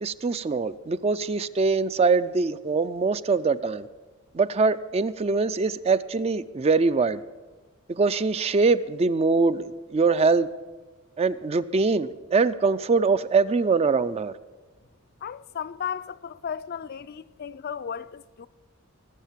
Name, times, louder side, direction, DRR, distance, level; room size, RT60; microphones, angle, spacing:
voice 1, 0.0-3.9 4.3-7.2 7.9-10.5 11.2-14.3, right 4 dB, 30° right, 0.3 m, -23 dB
voice 2, 15.2-18.5, left 7 dB, 45° left, 0.4 m, -35 dB
19.0 x 7.3 x 7.3 m
head